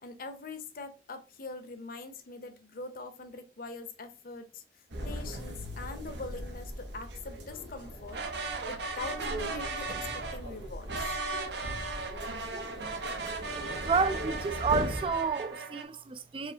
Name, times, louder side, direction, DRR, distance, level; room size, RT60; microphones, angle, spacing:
voice 1, 0.0-4.6 5.0-11.1, left 3 dB, 55° left, 0.7 m, -43 dB
sound 1, 4.9-15.4, equal, 90° right, 1.1 m, -40 dB
sound 2, 8.1-10.4 10.9-15.8, right 3 dB, 70° right, 0.8 m, -37 dB
voice 2, 13.8-16.5, right 4 dB, 30° right, 0.4 m, -30 dB
4.9 x 3.2 x 2.8 m
head